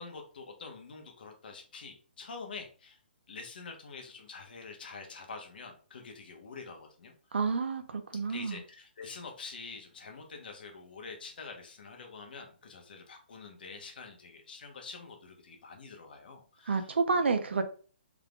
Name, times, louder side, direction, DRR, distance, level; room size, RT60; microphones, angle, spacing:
voice 1, 0.0-3.0 3.3-7.1 8.3-16.9, left 4 dB, 60° left, 1.0 m, -46 dB
voice 2, 7.3-8.6 16.7-17.6, right 4 dB, 85° right, 0.7 m, -29 dB
3.7 x 3.5 x 2.4 m
hypercardioid pair, 165°, 6 cm